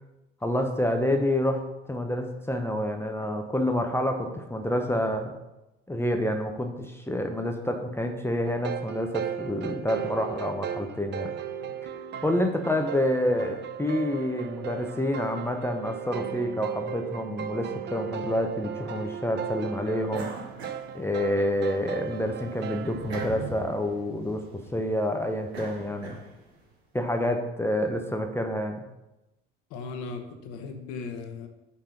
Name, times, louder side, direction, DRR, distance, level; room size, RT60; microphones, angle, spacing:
voice 1, 0.4-1.6 1.9-5.3 5.9-11.3 12.2-20.3 20.9-24.4 24.7-26.2 26.9-28.9, left 1 dB, 10° left, 4 dB, 0.7 m, -28 dB
sound 1, 8.4-23.3, right 8 dB, 35° right, 0.5 m, -36 dB
sound 2, 20.1-21.7 22.1-26.6, right 2 dB, 80° right, 1.2 m, -42 dB
voice 2, 29.7-31.5, left 4 dB, 60° left, 5 dB, 1.0 m, -37 dB
5.6 x 4.3 x 5.1 m, 0.97 s
hypercardioid pair, 60°, 31 cm